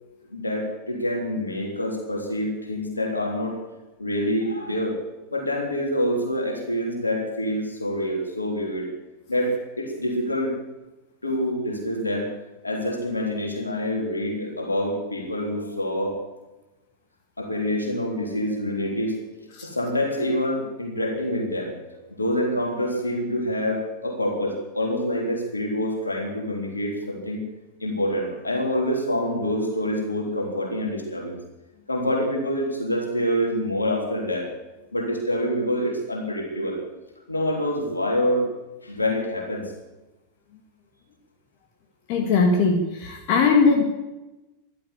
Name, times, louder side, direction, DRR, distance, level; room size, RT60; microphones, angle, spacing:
voice 1, 0.3-3.6 4.0-5.0 5.3-8.9 9.3-10.6 11.2-12.3 12.6-16.2 17.4-27.4 27.8-31.4 31.9-34.5 34.9-36.8 37.3-38.5 38.8-39.7, equal, 80° left, 1 dB, 3.5 m, -26 dB
voice 2, 42.1-43.8, left 4 dB, 45° left, 3 dB, 2.0 m, -19 dB
14.0 x 12.0 x 8.5 m, 1.0 s
figure-of-eight pair, 90°, 0 cm